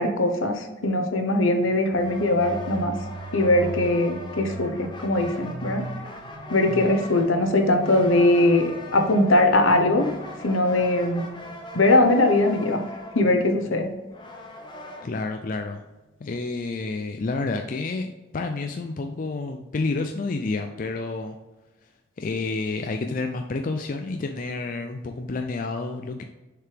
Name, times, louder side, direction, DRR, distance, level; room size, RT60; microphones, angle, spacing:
voice 1, 0.0-2.9 3.3-5.8 6.5-10.1 10.4-11.2 11.7-12.8 13.1-13.9, left 2 dB, 70° left, 5 dB, 1.0 m, -21 dB
sound 1, 1.9-15.1, left 1 dB, 20° left, 0.9 m, -41 dB
sound 2, 1.9-13.4, right 2 dB, 40° right, 0.4 m, -40 dB
voice 2, 6.7-7.0 15.0-15.8 16.2-21.4 22.2-26.2, left 3 dB, 40° left, 5 dB, 0.4 m, -29 dB
6.6 x 4.8 x 3.4 m, 1.1 s
head